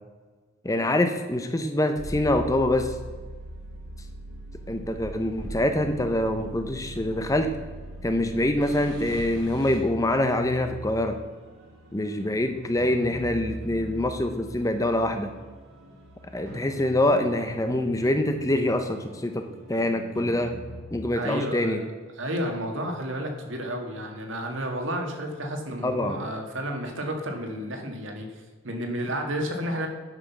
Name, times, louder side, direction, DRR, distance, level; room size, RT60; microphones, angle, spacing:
voice 1, 0.6-3.0 4.7-7.5 8.0-11.2 11.9-15.3 16.3-19.4 19.7-20.5 20.9-21.8 25.8-26.2, left 1 dB, 15° left, 7 dB, 0.5 m, -25 dB
sound 1, 2.0-20.8, right 1 dB, 80° right, 2.7 m, -41 dB
voice 2, 21.1-21.9 22.1-29.9, equal, 65° right, 3 dB, 1.7 m, -31 dB
9.7 x 6.3 x 5.9 m, 1.5 s
head